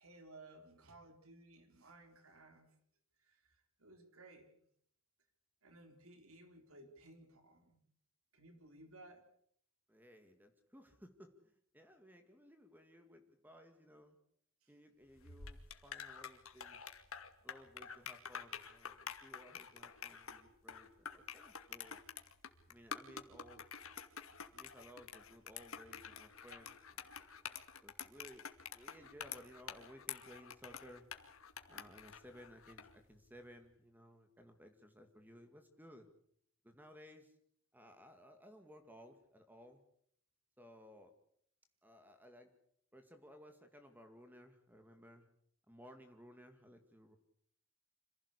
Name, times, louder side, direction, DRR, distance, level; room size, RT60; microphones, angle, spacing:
voice 1, 0.0-2.7 3.2-4.5 5.6-7.8 8.3-9.3 14.6-14.7 21.7-21.9, right 2 dB, 80° right, 6 dB, 3.9 m, -59 dB
voice 2, 9.9-14.2 14.7-16.9 17.4-22.0 22.7-23.7 24.5-27.3 27.8-31.1 31.7-36.1 36.6-37.4 37.7-39.8 40.6-41.2 41.8-42.5 42.9-45.3 45.7-47.2, equal, 10° right, 6 dB, 2.1 m, -59 dB
sound 1, 15.2-32.9, left 7 dB, 75° left, 2.4 m, -49 dB
27.0 x 16.0 x 8.4 m, 0.67 s
head